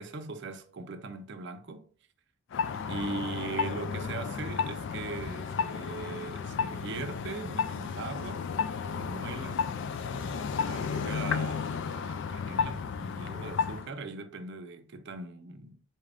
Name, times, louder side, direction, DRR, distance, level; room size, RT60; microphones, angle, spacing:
voice 1, 0.0-1.9 2.7-8.5 9.0-9.6 10.0-15.8, right 3 dB, 55° right, 0.5 m, -40 dB
sound 1, 2.5-13.9, left 6 dB, 55° left, 0.3 m, -33 dB
4.2 x 2.4 x 3.4 m
head